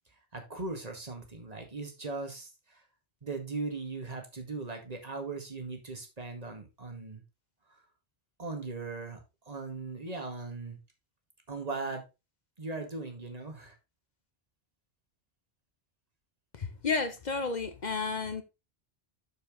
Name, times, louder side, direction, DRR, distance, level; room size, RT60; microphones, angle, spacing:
voice 1, 0.3-2.8 3.2-7.2 7.7-7.8 8.4-9.2 9.5-10.8 11.5-12.0 12.6-13.8, right 3 dB, 35° right, 1.9 m, -39 dB
voice 2, 16.6-18.4, left 4 dB, 45° left, 0.9 m, -32 dB
6.9 x 6.8 x 3.8 m
omnidirectional pair, 1.1 m